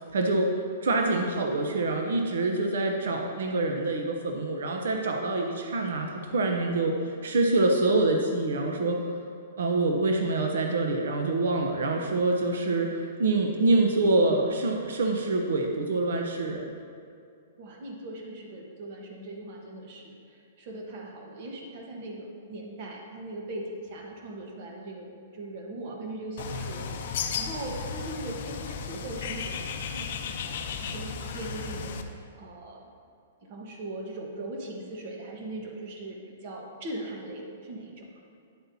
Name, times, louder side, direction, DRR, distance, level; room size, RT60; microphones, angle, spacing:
voice 1, 0.1-0.5 0.8-9.0 9.6-16.7, right 2 dB, 80° right, 3 dB, 0.8 m, -26 dB
voice 2, 17.6-32.8 33.5-38.1, right 2 dB, 40° right, 0 dB, 1.2 m, -40 dB
Bird, 26.4-32.0, left 6 dB, 55° left, 0.6 m, -34 dB
9.7 x 7.9 x 2.8 m, 2.5 s
hypercardioid pair, 170°, 0 cm